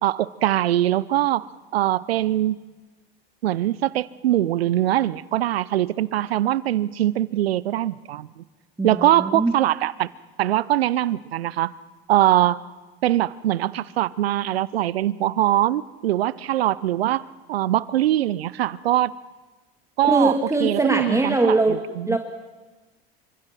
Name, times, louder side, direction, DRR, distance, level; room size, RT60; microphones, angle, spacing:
voice 1, 0.0-2.6 3.4-8.4 8.8-10.1 10.4-11.7 12.1-12.6 13.0-17.2 17.5-19.1 20.0-20.3 20.6-22.2, right 13 dB, 80° right, 21 dB, 0.7 m, -22 dB
voice 2, 8.8-9.5 20.1-21.8 22.1-22.2, right 2 dB, 10° right, 3 dB, 2.1 m, -21 dB
27.0 x 25.5 x 6.0 m, 1.2 s
hypercardioid pair, 70°, 30 cm